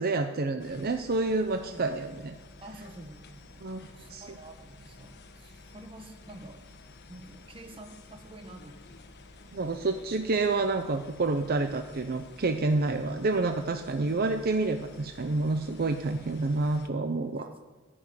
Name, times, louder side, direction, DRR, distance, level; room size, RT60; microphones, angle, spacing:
voice 1, 0.0-2.3 3.6-3.8 4.1-4.2 9.5-17.5, right 3 dB, 45° right, 7 dB, 0.6 m, -28 dB
sound 1, 0.6-16.9, left 2 dB, 55° left, 1.2 m, -51 dB
voice 2, 2.6-6.6 7.1-8.8 16.1-16.4 17.2-17.5, right 1 dB, 25° right, 5 dB, 1.5 m, -48 dB
14.0 x 6.3 x 9.6 m, 1.3 s
head